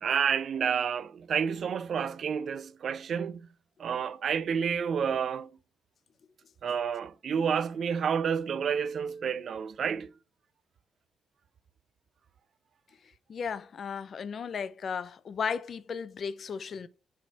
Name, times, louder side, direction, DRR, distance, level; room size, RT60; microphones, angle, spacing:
voice 1, 0.0-3.5 3.8-5.5 6.6-10.1, right 7 dB, 55° right, 0.4 m, -29 dB
voice 2, 13.3-16.9, left 6 dB, 50° left, 0.5 m, -35 dB
7.2 x 3.5 x 4.3 m
cardioid pair, 90°, 0 cm